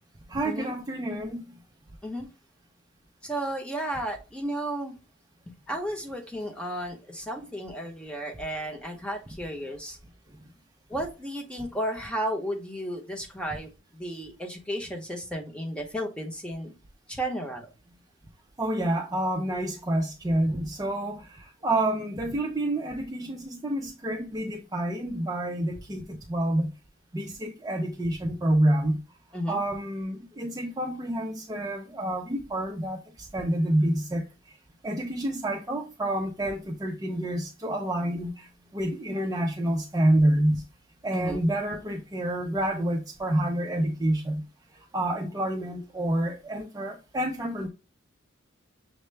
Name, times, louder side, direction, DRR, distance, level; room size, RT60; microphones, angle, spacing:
voice 1, 0.3-1.4 18.6-26.7 27.1-29.0 29.5-34.2 34.8-38.5 38.7-40.6 41.0-44.4 44.9-47.7, right 1 dB, 20° right, 0.4 m, -28 dB
voice 2, 3.2-4.9 5.7-10.0 10.9-16.7 17.1-17.7 29.3-29.6 41.1-41.5, right 1 dB, 5° left, 0.9 m, -33 dB
6.4 x 2.1 x 3.2 m
head